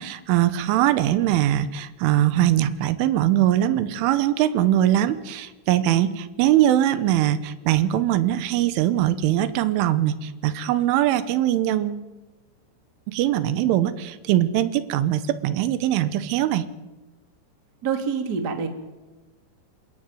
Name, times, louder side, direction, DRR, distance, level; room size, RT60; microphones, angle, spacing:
voice 1, 0.0-12.1 13.1-16.7, right 12 dB, 85° right, 13 dB, 3.6 m, -21 dB
voice 2, 17.8-18.7, right 6 dB, 30° right, 6 dB, 1.9 m, -26 dB
27.0 x 14.5 x 9.2 m, 1.2 s
omnidirectional pair, 5.5 m